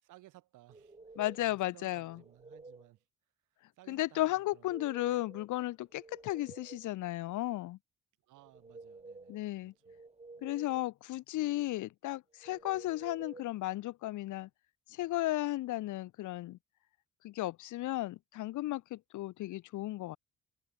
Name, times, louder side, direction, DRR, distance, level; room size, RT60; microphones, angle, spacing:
voice 1, 0.0-3.0 3.8-4.8 8.2-10.0, right 16 dB, 90° right, 5.2 m, -60 dB
sound 1, 0.7-1.5 2.0-2.9 4.5-5.5 5.8-6.9 8.4-9.4 9.8-10.8 12.4-13.5, right 3 dB, 20° right, 6.0 m, -52 dB
voice 2, 1.2-2.2 3.9-7.8 9.3-9.7 10.4-14.5 14.9-16.6 17.2-20.2, left 16 dB, 80° left, 0.8 m, -35 dB
cardioid pair, 90°, 30 cm